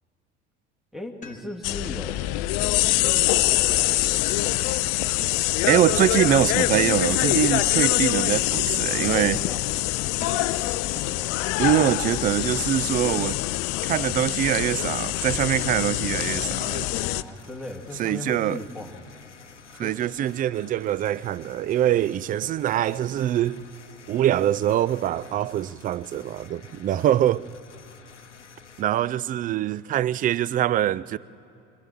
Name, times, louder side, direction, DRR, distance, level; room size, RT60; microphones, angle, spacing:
voice 1, 0.9-2.2 2.6-4.5 9.1-9.7 10.9-11.3 16.9-19.1 19.7-20.0, left 2 dB, ahead, 2.1 m, -38 dB
sound 1, 1.2-1.9 4.2-5.0 7.2-7.9 10.2-10.7 12.4-13.0, left 5 dB, 20° left, 2.4 m, -44 dB
sound 2, 1.6-17.2, left 18 dB, 45° left, 0.5 m, -24 dB
voice 2, 5.7-9.4 11.6-13.4 13.8-16.9 18.0-18.6 19.8-23.6 24.1-27.5 28.8-31.2, right 12 dB, 25° right, 0.4 m, -24 dB
sound 3, 15.0-28.8, left 6 dB, 85° left, 0.8 m, -49 dB
25.0 x 15.0 x 7.5 m
figure-of-eight pair, 65°, 35 cm